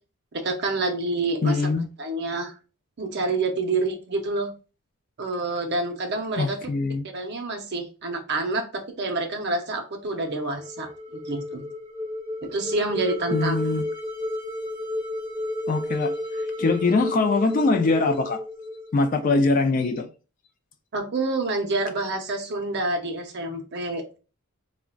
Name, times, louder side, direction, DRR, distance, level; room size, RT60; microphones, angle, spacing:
voice 1, 0.3-1.7 2.0-2.5 3.0-4.5 5.2-6.7 7.0-11.6 12.4-13.6 20.9-24.0, right 2 dB, 50° right, 0.6 m, -28 dB
voice 2, 1.4-1.9 6.4-7.0 13.3-13.8 15.7-18.4 18.9-20.1, left 3 dB, 35° left, 0.3 m, -23 dB
sound 1, 10.2-19.4, left 1 dB, 10° right, 1.4 m, -32 dB
3.7 x 2.1 x 2.2 m
head